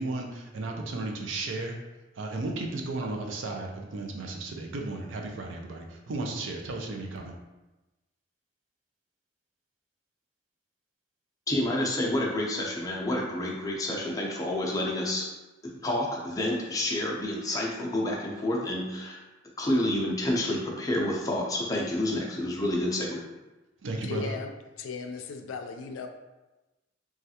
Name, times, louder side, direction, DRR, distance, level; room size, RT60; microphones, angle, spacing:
voice 1, 0.0-1.8 2.2-7.3 23.8-24.3, right 2 dB, 75° right, 2 dB, 0.5 m, -34 dB
voice 2, 11.5-15.2 15.6-19.2 19.6-23.2, left 1 dB, 20° left, -3 dB, 0.5 m, -29 dB
voice 3, 24.0-24.5 24.8-26.1, left 5 dB, 85° left, 6 dB, 0.3 m, -36 dB
3.1 x 2.4 x 2.8 m, 1.1 s
head